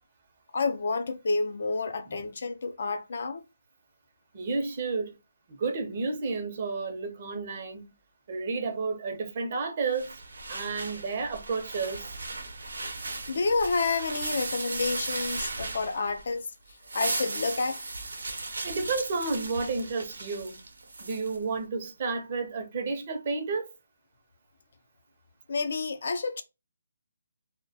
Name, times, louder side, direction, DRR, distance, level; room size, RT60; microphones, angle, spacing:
voice 1, 0.5-3.4 13.3-16.5 16.9-17.8 25.5-26.4, left 4 dB, 60° left, 0.4 m, -29 dB
voice 2, 4.3-5.2 5.5-7.9 8.3-10.2 10.5-12.1 18.6-20.6 21.0-23.7, right 4 dB, 40° right, 0.6 m, -31 dB
sound 1, 9.9-16.3 16.7-21.4, right 3 dB, 80° right, 0.7 m, -36 dB
2.2 x 2.1 x 2.6 m
hypercardioid pair, 160°, 0 cm